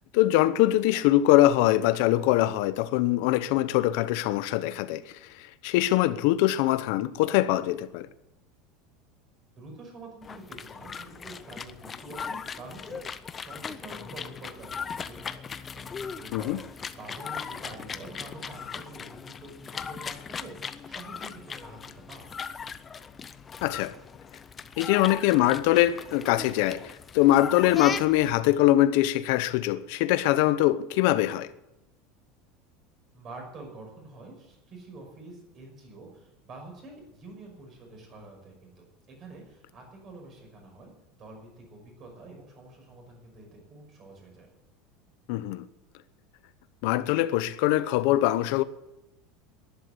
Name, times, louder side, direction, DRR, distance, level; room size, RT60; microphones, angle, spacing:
voice 1, 0.1-8.1 16.3-16.6 23.6-23.9 24.8-31.5 45.3-45.6 46.8-48.6, left 15 dB, 60° left, 0.8 m, -23 dB
voice 2, 9.6-22.4 33.1-40.9 41.2-44.5, right 2 dB, 30° right, 5.7 m, -47 dB
sound 1, 10.2-28.4, left 6 dB, 20° left, 0.6 m, -39 dB
11.5 x 11.0 x 9.7 m
supercardioid pair, 165°, 0 cm